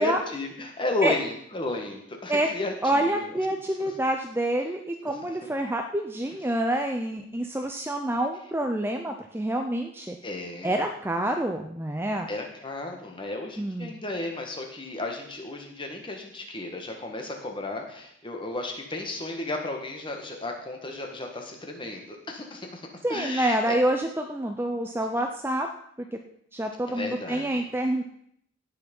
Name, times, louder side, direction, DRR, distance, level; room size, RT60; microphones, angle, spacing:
voice 1, 0.0-3.4 3.8-3.9 5.0-5.3 10.2-10.8 12.3-23.8 26.9-27.6, left 2 dB, 20° left, 2 dB, 1.6 m, -34 dB
voice 2, 2.8-10.2 10.6-12.3 13.6-13.9 23.0-25.7 26.5-28.0, right 1 dB, 10° right, 4 dB, 0.6 m, -27 dB
16.5 x 5.9 x 5.4 m, 0.71 s
head